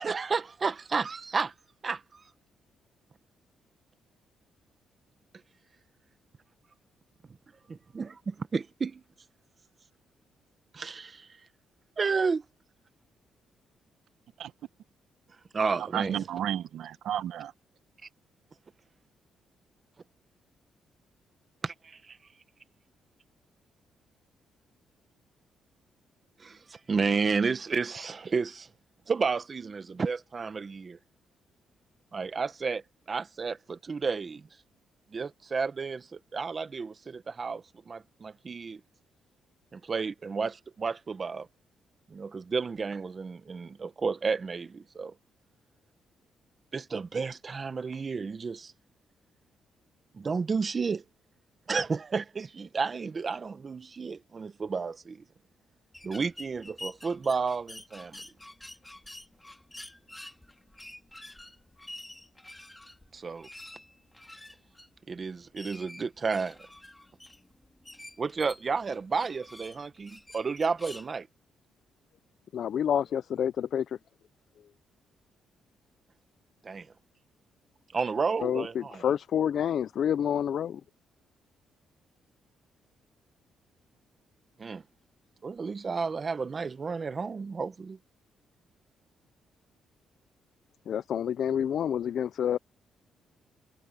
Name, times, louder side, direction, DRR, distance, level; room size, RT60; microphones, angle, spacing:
voice 1, 0.0-1.5 1.8-2.2 7.9-8.9 10.8-11.1 12.0-12.4 15.5-16.2 21.6-21.7 26.4-28.7 29.1-31.0 32.1-32.8 33.1-34.4 35.1-36.0 36.3-37.6 37.9-38.8 39.9-40.5 40.8-41.4 42.1-45.1 46.7-48.7 50.2-51.0 51.7-55.2 56.0-58.2 63.1-63.5 65.1-66.5 68.2-71.2 76.7-76.8 77.9-79.0 84.6-84.8 85.4-88.0, right 5 dB, 35° right, 1.3 m, -31 dB
voice 2, 15.6-17.5, right 10 dB, 75° right, 1.0 m, -33 dB
sound 1, 55.9-71.1, left 1 dB, 10° left, 2.1 m, -48 dB
voice 3, 72.5-73.9 78.4-80.8 90.9-92.6, left 9 dB, 65° left, 0.4 m, -28 dB
cardioid pair, 110°, 0 cm